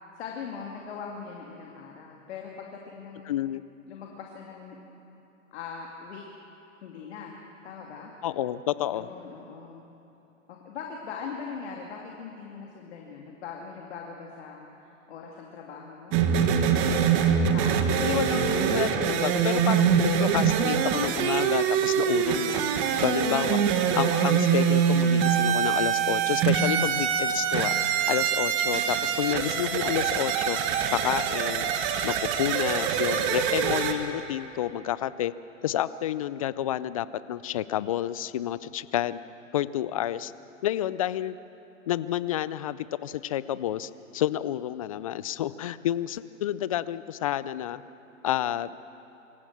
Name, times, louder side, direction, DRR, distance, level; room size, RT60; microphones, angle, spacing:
voice 1, 0.2-3.4 3.9-4.8 5.5-6.2 6.8-7.4 7.6-8.1 8.8-9.8 10.5-16.4 17.2-18.0, left 6 dB, 55° left, 0 dB, 2.5 m, -41 dB
voice 2, 3.3-3.6 8.2-9.1 18.0-22.6 23.0-23.6 23.9-27.8 28.1-30.6 30.9-31.7 32.0-35.3 35.6-39.2 39.5-40.3 40.6-41.4 41.9-47.8 48.2-48.7, left 12 dB, 30° left, 17 dB, 0.4 m, -29 dB
sound 1, 16.1-33.9, right 7 dB, 30° right, 1.5 m, -24 dB
25.0 x 14.5 x 7.3 m, 3.0 s
hypercardioid pair, 125°, 40 cm